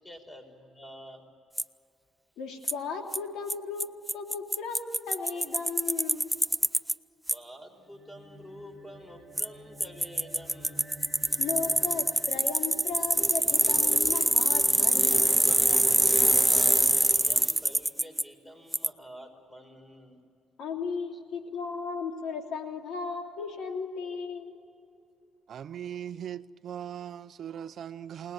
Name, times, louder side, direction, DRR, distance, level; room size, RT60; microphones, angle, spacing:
voice 1, 0.0-1.3 7.3-10.9 16.5-20.2 21.1-21.2, equal, 20° left, 5.5 m, -48 dB
Bicycle, 1.6-1.7 2.7-2.8 3.1-3.2 3.5-3.6 3.8-3.9 4.1-6.9 7.3-7.4 9.4-9.5 9.8-18.2 18.7-18.9, right 1 dB, 5° right, 0.5 m, -24 dB
voice 2, 2.4-6.3 11.4-15.3 20.6-24.5, left 5 dB, 85° left, 3.1 m, -36 dB
sound 1, 7.8-14.4, equal, 50° left, 4.2 m, -51 dB
voice 3, 25.5-28.3, right 9 dB, 65° right, 0.6 m, -39 dB
28.5 x 19.5 x 9.0 m
cardioid pair, 90°, 0 cm